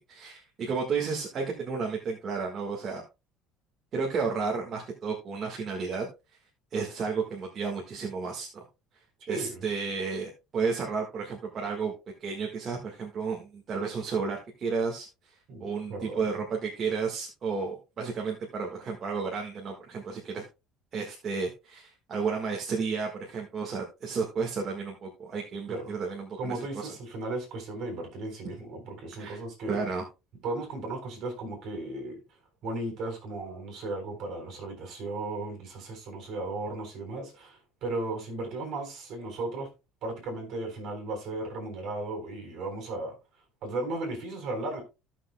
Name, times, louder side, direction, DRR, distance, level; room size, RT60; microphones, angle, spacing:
voice 1, 0.1-3.0 3.9-6.4 6.7-8.6 8.9-11.9 12.2-20.4 20.9-26.9 29.1-29.4 29.7-30.0, right 5 dB, 30° right, 1.5 m, -32 dB
voice 2, 9.2-9.6 15.5-16.4 25.7-26.0 26.4-29.8 30.4-32.2 32.6-39.7 40.0-43.1 43.6-44.8, right 2 dB, 45° right, 3.9 m, -35 dB
15.5 x 6.0 x 2.2 m
cardioid pair, 180°, 0 cm